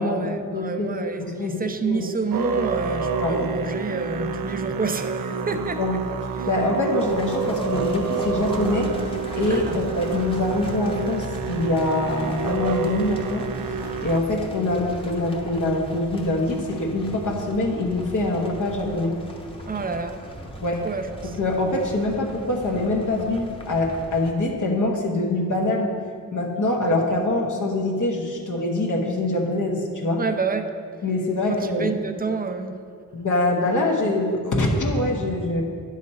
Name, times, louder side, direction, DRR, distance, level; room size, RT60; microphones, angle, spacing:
voice 1, 0.0-5.8 6.4-6.5 9.5-9.8 19.7-20.2 20.8-21.4 30.2-30.7 31.8-32.8, right 4 dB, 25° right, 8 dB, 0.6 m, -28 dB
voice 2, 0.5-0.9 1.2-2.1 3.2-3.5 5.8-6.0 6.5-8.9 9.3-13.5 14.0-19.1 19.7-19.8 20.6-20.8 21.4-25.9 26.3-30.2 31.0-31.9 33.1-35.6, left 2 dB, 60° left, -1 dB, 1.1 m, -24 dB
Musical instrument, 2.3-14.2, right 5 dB, 80° right, 0.6 m, -28 dB
sound 1, 7.0-24.3, equal, 15° left, 1.0 m, -39 dB
9.7 x 6.3 x 4.2 m, 2.1 s
wide cardioid pair, 85°, 34 cm